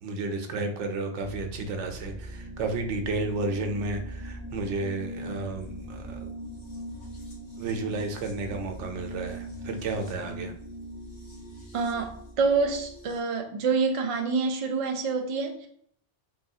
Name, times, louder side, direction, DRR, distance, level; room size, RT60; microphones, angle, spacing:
voice 1, 0.0-6.3 7.6-10.5, right 3 dB, 80° right, 4 dB, 0.9 m, -32 dB
sound 1, 1.2-13.2, right 1 dB, 75° left, 1.3 m, -41 dB
voice 2, 11.7-15.7, right 4 dB, 55° right, 3 dB, 0.3 m, -27 dB
3.8 x 2.3 x 2.7 m, 0.62 s
omnidirectional pair, 1.2 m